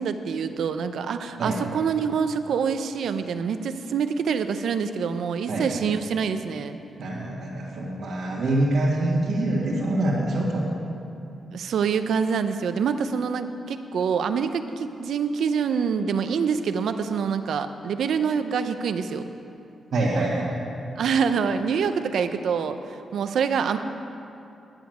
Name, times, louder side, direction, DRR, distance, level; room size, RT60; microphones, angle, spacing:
voice 1, 0.0-6.8 11.5-19.3 21.0-22.8 23.1-23.8, right 6 dB, 75° right, 9 dB, 0.6 m, -26 dB
voice 2, 7.0-10.7 19.9-20.5, right 1 dB, 55° right, -7 dB, 1.8 m, -25 dB
10.5 x 7.1 x 9.2 m, 2.7 s
wide cardioid pair, 155°, 0 cm